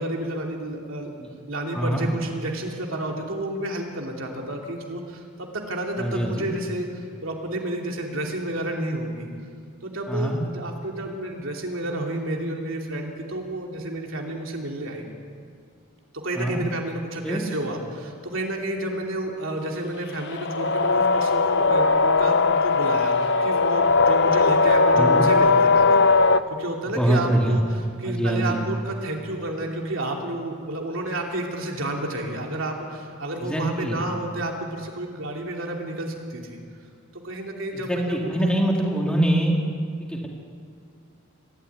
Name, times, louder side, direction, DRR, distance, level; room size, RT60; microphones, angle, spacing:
voice 1, 0.0-1.1 1.5-9.3 9.8-15.1 16.1-26.0 26.5-27.6 28.0-36.6 37.1-38.6, right 1 dB, 70° right, 1 dB, 3.0 m, -30 dB
voice 2, 1.7-2.1 6.0-6.5 10.1-10.4 16.3-16.6 17.2-17.5 25.0-25.3 26.9-27.6 28.0-28.6 33.4-34.0 37.7-39.6 40.0-40.3, right 1 dB, 5° left, -1 dB, 2.8 m, -24 dB
sound 1, 20.2-26.4, left 4 dB, 55° left, 0.7 m, -19 dB
24.5 x 13.0 x 9.6 m, 2.2 s
head